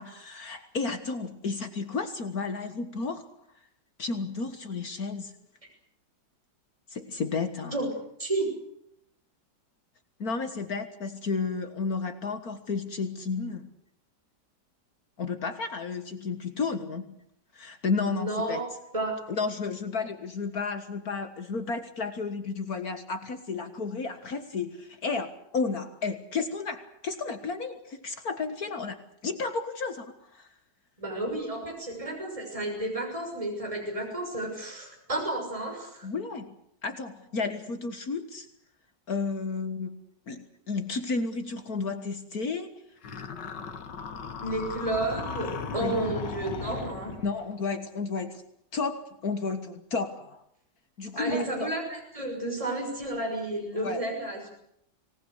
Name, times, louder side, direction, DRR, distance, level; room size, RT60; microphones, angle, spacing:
voice 1, 0.0-3.2 4.0-5.3 6.9-7.8 10.2-13.7 15.2-17.1 17.5-18.6 19.3-29.0 29.2-30.5 36.0-36.5 36.8-38.5 39.1-40.0 40.3-42.7 45.8-46.0 47.2-48.4 48.7-50.4 51.0-51.7 53.8-54.0, left 4 dB, 60° left, 8 dB, 2.0 m, -32 dB
voice 2, 18.1-18.7 18.9-19.1 31.0-36.1 44.4-47.1 51.2-54.5, right 2 dB, 20° right, 1 dB, 6.7 m, -31 dB
sound 1, 43.0-47.4, left 5 dB, 80° left, 2.2 m, -37 dB
25.5 x 19.5 x 8.2 m, 0.72 s
omnidirectional pair, 1.9 m